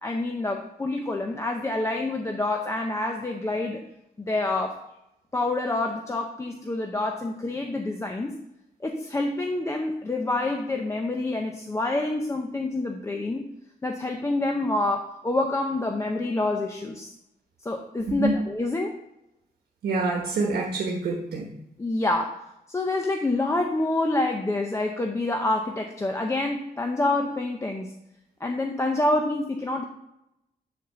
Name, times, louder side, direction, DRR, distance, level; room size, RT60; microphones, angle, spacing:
voice 1, 0.0-3.8 4.2-4.9 5.3-8.4 8.8-13.5 13.8-17.1 17.6-19.0 21.8-22.4 22.7-27.9 28.4-29.8, left 2 dB, 15° left, 2 dB, 0.6 m, -27 dB
voice 2, 19.8-21.5, right 3 dB, 85° right, -1 dB, 1.3 m, -26 dB
10.0 x 4.2 x 6.7 m, 0.86 s
wide cardioid pair, 175°, 16 cm